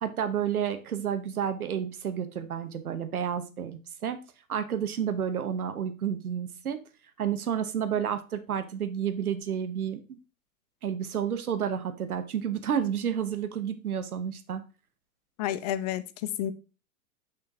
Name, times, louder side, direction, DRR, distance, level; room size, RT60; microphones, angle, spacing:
voice 1, 0.0-4.2 4.5-6.8 7.2-10.2 10.8-14.6, right 8 dB, 80° right, 10 dB, 0.8 m, -30 dB
voice 2, 15.4-16.5, left 11 dB, 30° left, 14 dB, 0.4 m, -30 dB
6.4 x 5.7 x 2.6 m, 0.32 s
figure-of-eight pair, 105°, 43 cm